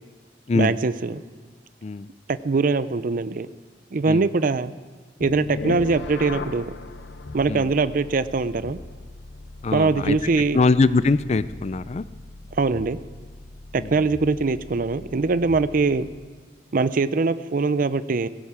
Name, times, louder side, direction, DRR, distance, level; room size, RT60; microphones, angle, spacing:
voice 1, 0.6-1.2 2.3-3.5 3.9-4.7 5.2-6.7 7.3-8.8 9.7-10.6 12.6-13.0 13.7-16.1 16.7-18.3, right 4 dB, 50° right, 14 dB, 0.5 m, -22 dB
sound 1, 5.2-16.3, left 3 dB, 80° left, 0.9 m, -38 dB
voice 2, 9.6-10.2 10.5-12.0 13.7-14.1, left 3 dB, 40° left, 15 dB, 0.4 m, -22 dB
17.0 x 16.0 x 4.9 m, 1.5 s
head